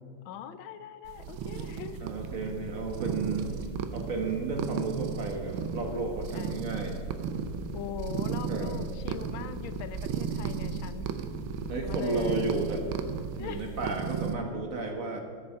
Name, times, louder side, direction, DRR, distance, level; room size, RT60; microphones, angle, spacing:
voice 1, 0.2-2.1 3.3-3.9 6.3-6.6 7.7-11.1 11.8-12.5 13.4-13.8, left 8 dB, 80° left, 12 dB, 1.4 m, -41 dB
sound 1, 1.1-14.4, right 6 dB, 75° right, 1.5 m, -35 dB
voice 2, 2.0-3.5 3.9-7.0 8.5-8.8 11.7-12.8 13.4-15.2, right 3 dB, 50° right, 4 dB, 1.3 m, -32 dB
14.0 x 6.9 x 5.5 m, 2.1 s
omnidirectional pair, 2.2 m